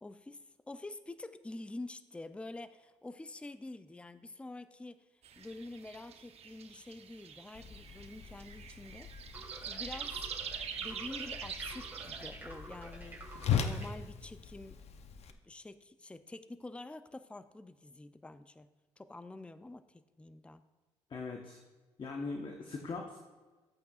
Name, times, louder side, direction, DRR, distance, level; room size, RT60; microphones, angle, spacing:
voice 1, 0.0-5.1 5.4-9.1 9.6-10.2 10.8-14.8 15.4-20.6, left 2 dB, 10° left, 12 dB, 0.4 m, -47 dB
sound 1, 5.2-12.3, right 7 dB, 60° right, 0.8 m, -44 dB
Whoosh swoosh swish, 7.5-15.3, left 7 dB, 65° left, 0.7 m, -40 dB
sound 2, 9.3-13.9, right 2 dB, 15° right, 3.1 m, -50 dB
voice 2, 21.1-21.6 22.0-23.2, left 3 dB, 45° left, 2 dB, 1.1 m, -40 dB
13.5 x 8.3 x 2.4 m, 1.3 s
cardioid pair, 75°, 12 cm